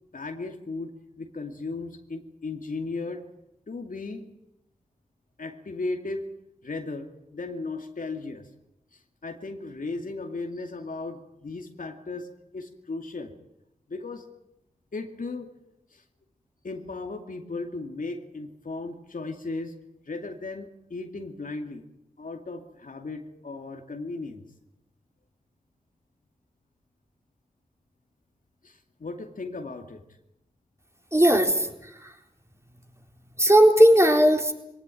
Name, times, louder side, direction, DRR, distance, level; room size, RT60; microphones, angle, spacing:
voice 1, 0.1-0.9 1.2-3.2 3.7-4.3 5.4-6.3 6.6-8.5 8.9-12.3 12.5-13.3 13.9-14.3 14.9-15.5 15.9-16.0 16.6-19.7 20.1-21.8 22.2-24.4 28.6-30.0, left 3 dB, 70° left, 5 dB, 2.5 m, -36 dB
voice 2, 31.1-32.1 33.4-34.5, right 1 dB, 20° right, 3 dB, 3.9 m, -18 dB
21.0 x 18.0 x 9.2 m, 0.85 s
cardioid pair, 40°, 15 cm